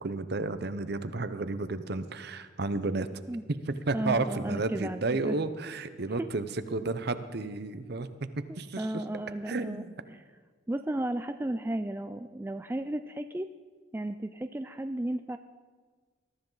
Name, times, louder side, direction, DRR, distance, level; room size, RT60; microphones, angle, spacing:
voice 1, 0.0-3.1 3.5-9.0 9.5-9.9, right 3 dB, 55° right, 11 dB, 0.8 m, -32 dB
voice 2, 3.9-5.4 6.2-6.3 8.8-10.2 10.7-13.5 13.9-15.4, right 1 dB, 10° right, 8 dB, 0.3 m, -34 dB
21.5 x 13.0 x 4.0 m, 1.5 s
head